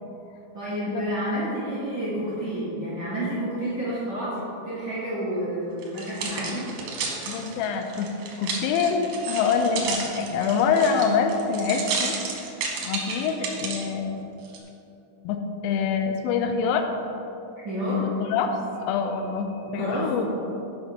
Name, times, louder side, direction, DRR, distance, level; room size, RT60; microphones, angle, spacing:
voice 1, 0.5-6.7 17.6-18.1 19.7-20.3, right 1 dB, 35° right, -10 dB, 1.7 m, -29 dB
sound 1, 5.8-13.9 14.4-14.6, right 5 dB, 70° right, 2.4 m, -32 dB
voice 2, 7.3-8.1 8.4-12.1 12.8-14.2 15.2-16.8 17.8-18.5 18.9-20.2, left 6 dB, 90° left, 5 dB, 3.3 m, -25 dB
10.0 x 6.1 x 5.3 m, 2.8 s
omnidirectional pair, 5.7 m